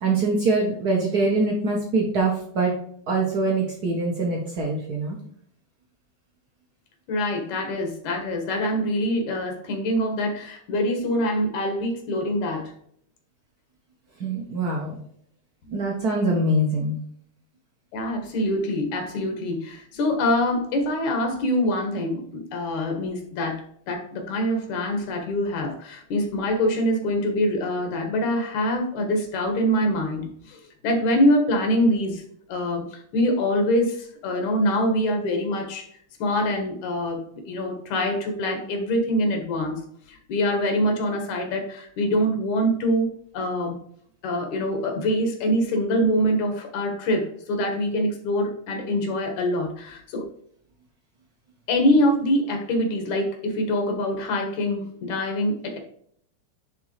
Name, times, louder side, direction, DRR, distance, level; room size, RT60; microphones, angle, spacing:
voice 1, 0.0-2.7 3.1-5.2 14.2-15.0 15.7-17.0, right 2 dB, 60° right, -2 dB, 1.0 m, -23 dB
voice 2, 7.1-12.7 15.7-15.8 17.9-23.6 23.9-30.6 30.8-32.2 32.5-35.9 36.2-37.2 37.5-39.8 40.1-43.8 44.2-50.3 51.7-55.8, equal, 85° left, 4 dB, 2.8 m, -24 dB
10.0 x 3.8 x 3.2 m, 0.65 s
omnidirectional pair, 3.3 m